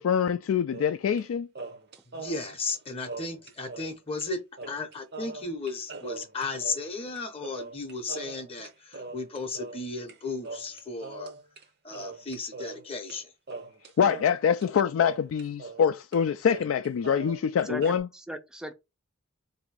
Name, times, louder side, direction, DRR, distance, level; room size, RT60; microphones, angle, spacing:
voice 1, 0.0-1.5 14.0-18.1, left 7 dB, 75° left, 0.3 m, -25 dB
sound 1, 0.7-1.3 1.5-3.9 4.2-4.3 4.6-10.2 10.4-11.6 11.9-13.2 13.5-15.9 16.1-16.2 16.5-18.0, right 3 dB, 55° right, 0.7 m, -41 dB
voice 2, 2.1-4.4 4.7-11.3 11.8-13.3, left 3 dB, 30° left, 0.7 m, -35 dB
voice 3, 17.6-18.7, right 1 dB, 5° right, 0.4 m, -38 dB
3.9 x 2.7 x 4.7 m
head